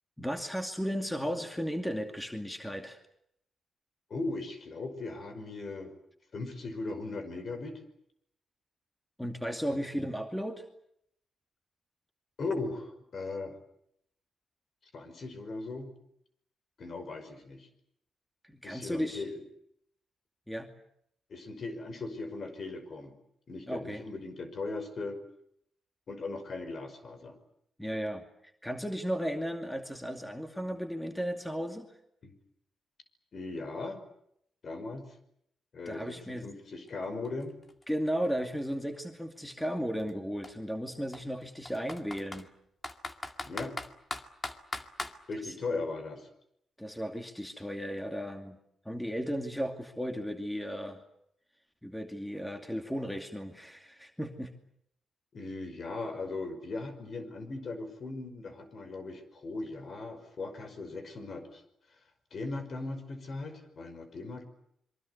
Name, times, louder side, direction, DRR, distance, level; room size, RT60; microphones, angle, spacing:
voice 1, 0.2-3.0 9.2-10.7 18.4-19.2 20.5-20.7 23.7-24.0 27.8-28.2 28.6-31.9 35.9-36.5 37.9-42.5 46.8-48.6 48.8-51.0 51.8-54.5, equal, 5° left, 5 dB, 2.5 m, -35 dB
voice 2, 4.1-5.9 6.3-7.8 9.7-9.8 12.4-13.5 14.9-15.9 16.8-17.7 18.6-19.4 21.3-23.1 23.5-25.2 26.1-27.4 32.2-32.3 33.3-34.0 34.6-35.1 35.7-37.6 43.4-43.8 45.3-46.3 55.3-61.6 62.3-64.5, left 3 dB, 50° left, 9 dB, 5.5 m, -38 dB
Computer keyboard, 36.9-37.0 37.2-39.2 40.0-40.1 40.4-40.5 41.1-42.4 42.8-45.2, left 2 dB, 30° left, 2.2 m, -39 dB
26.5 x 23.5 x 8.2 m, 0.73 s
cardioid pair, 95°, 0 cm